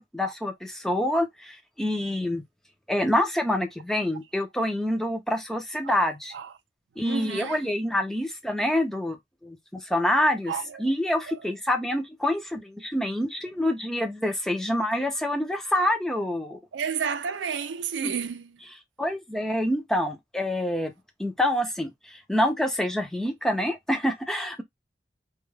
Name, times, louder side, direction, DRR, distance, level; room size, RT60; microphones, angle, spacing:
voice 1, 0.0-2.4 2.9-6.3 7.0-9.2 9.4-10.5 10.8-16.6 18.0-18.1 19.0-20.9 21.2-24.6, left 1 dB, 5° left, 0.5 m, -26 dB
voice 2, 7.0-7.7 10.5-11.4 16.7-18.6, right 7 dB, 85° right, 0.4 m, -32 dB
2.3 x 2.2 x 3.1 m
head